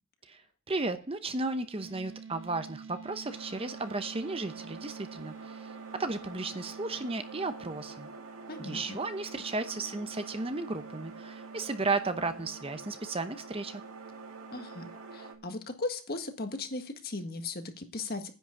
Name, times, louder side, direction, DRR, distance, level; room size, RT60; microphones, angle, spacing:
voice 1, 0.7-8.1 8.6-13.8, right 3 dB, 25° right, 9 dB, 0.8 m, -34 dB
sound 1, 1.8-15.6, right 5 dB, 55° right, 1.5 m, -48 dB
sound 2, 3.3-15.3, right 3 dB, 75° right, 2.3 m, -48 dB
voice 2, 8.5-9.0 14.5-18.3, left 3 dB, 45° left, 6 dB, 1.7 m, -37 dB
10.5 x 6.1 x 8.5 m, 0.34 s
head